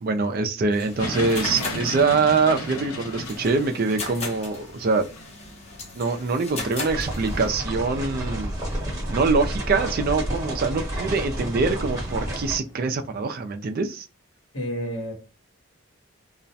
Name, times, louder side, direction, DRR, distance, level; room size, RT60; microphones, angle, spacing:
voice 1, 0.0-5.1 6.0-8.6 9.1-14.1, right 4 dB, 45° right, 0.4 m, -24 dB
sound 1, 0.7-7.5, left 3 dB, 30° left, 0.6 m, -37 dB
sound 2, 1.0-13.2, left 1 dB, 90° left, 0.7 m, -38 dB
sound 3, 6.9-12.6, right 1 dB, 15° right, 0.9 m, -30 dB
voice 2, 14.5-15.1, equal, 70° left, 1.1 m, -29 dB
2.3 x 2.1 x 2.6 m
head